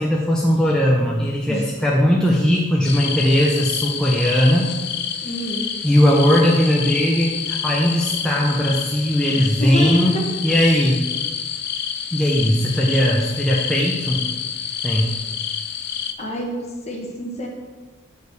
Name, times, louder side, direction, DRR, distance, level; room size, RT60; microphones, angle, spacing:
voice 1, 0.0-4.7 5.8-11.0 12.1-14.3 14.8-15.1, equal, 5° left, -4 dB, 0.7 m, -18 dB
sound 1, 2.8-16.1, left 8 dB, 55° left, 0.5 m, -28 dB
voice 2, 5.2-5.7 9.4-10.2 16.2-17.5, equal, 30° left, 0 dB, 1.4 m, -28 dB
6.4 x 5.1 x 6.7 m, 1.3 s
head